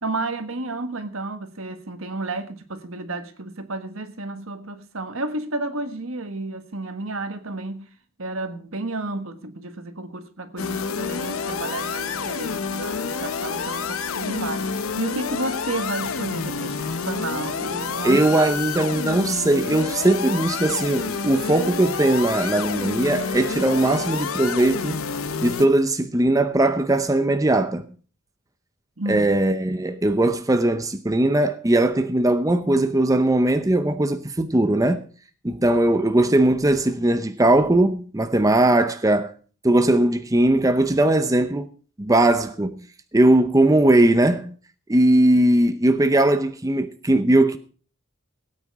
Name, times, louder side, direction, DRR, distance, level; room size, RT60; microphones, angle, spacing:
voice 1, 0.0-7.8 8.2-14.7 15.0-18.2 29.0-29.4, right 2 dB, 75° right, 1.6 m, -31 dB
sound 1, 10.6-25.7, left 5 dB, 85° left, 1.0 m, -29 dB
voice 2, 18.0-25.0 25.4-27.9 29.1-35.0 35.4-39.3 39.6-41.7 42.0-42.8 43.1-44.5 44.9-47.6, right 1 dB, 15° right, 0.7 m, -19 dB
17.0 x 9.0 x 4.7 m
head